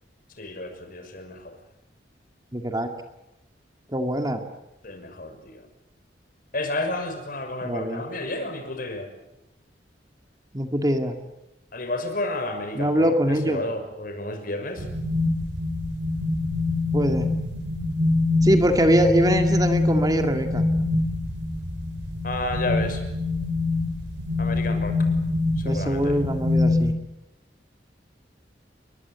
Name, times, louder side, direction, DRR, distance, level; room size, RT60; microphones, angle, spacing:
voice 1, 0.4-1.6 4.8-5.7 6.5-9.1 11.7-14.9 22.2-23.0 24.4-25.0 25.6-26.2, left 2 dB, 50° left, 7 dB, 6.3 m, -31 dB
voice 2, 2.5-2.9 3.9-4.4 7.6-8.0 10.5-11.2 12.7-13.6 16.9-17.3 18.4-20.6 25.6-26.9, equal, 20° right, 6 dB, 2.3 m, -23 dB
sound 1, 14.8-26.9, left 2 dB, 80° right, 5.3 m, -24 dB
29.5 x 23.0 x 8.4 m, 0.92 s
head